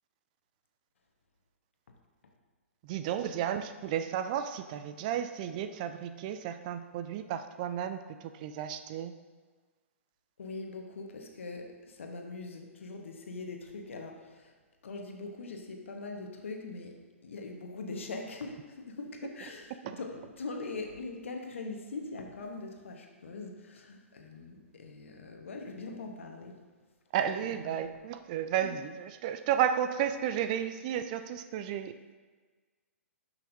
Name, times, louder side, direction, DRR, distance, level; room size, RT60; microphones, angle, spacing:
voice 1, 2.8-9.1 19.8-20.0 27.1-31.9, right 9 dB, 35° right, 9 dB, 0.4 m, -33 dB
voice 2, 10.4-14.5 14.8-17.0 17.2-26.6 27.4-27.8 28.6-28.7, left 3 dB, 60° left, 2 dB, 1.2 m, -42 dB
12.0 x 5.8 x 2.7 m, 1.4 s
figure-of-eight pair, 120°, 7 cm